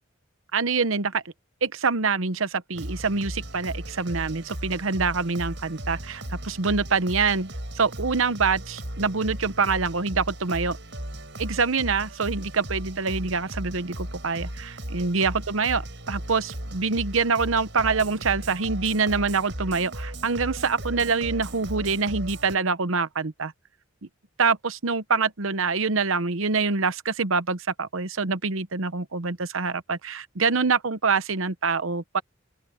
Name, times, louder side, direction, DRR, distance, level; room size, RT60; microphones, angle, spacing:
voice 1, 0.5-1.2 1.6-10.8 11.4-23.5 24.4-32.2, right 4 dB, 70° right, 1.0 m, -25 dB
sound 1, 2.7-22.6, right 1 dB, 55° right, 7.9 m, -36 dB
open air
head